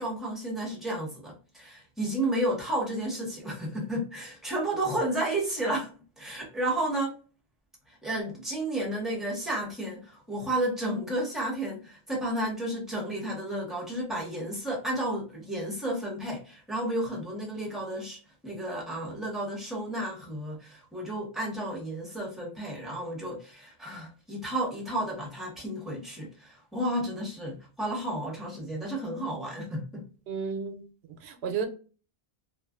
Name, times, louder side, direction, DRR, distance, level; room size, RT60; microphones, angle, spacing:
voice 1, 0.0-5.9 6.2-7.2 7.9-30.1, right 1 dB, ahead, 0.9 m, -32 dB
voice 2, 30.3-30.8 31.2-31.7, right 6 dB, 85° right, 0.8 m, -32 dB
2.4 x 2.4 x 2.3 m
omnidirectional pair, 1.0 m